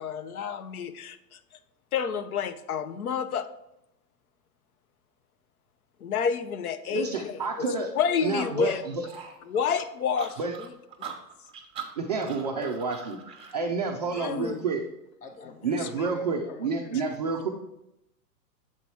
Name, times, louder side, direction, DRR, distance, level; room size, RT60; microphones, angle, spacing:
voice 1, 0.0-1.4 1.9-3.5 6.0-7.0 8.0-8.8 9.5-10.4 14.2-14.6 15.8-15.9, left 7 dB, 60° left, 11 dB, 0.6 m, -29 dB
voice 2, 6.9-7.9 8.2-9.1 10.4-10.5 12.0-13.2 13.5-14.8 15.6-17.5, right 4 dB, 30° right, 1 dB, 0.3 m, -29 dB
sound 1, 9.1-13.6, right 7 dB, 10° right, 1.0 m, -42 dB
voice 3, 13.8-14.5 15.2-17.5, left 2 dB, 15° left, 5 dB, 0.6 m, -48 dB
7.2 x 4.0 x 4.4 m, 0.85 s
figure-of-eight pair, 105°, 49 cm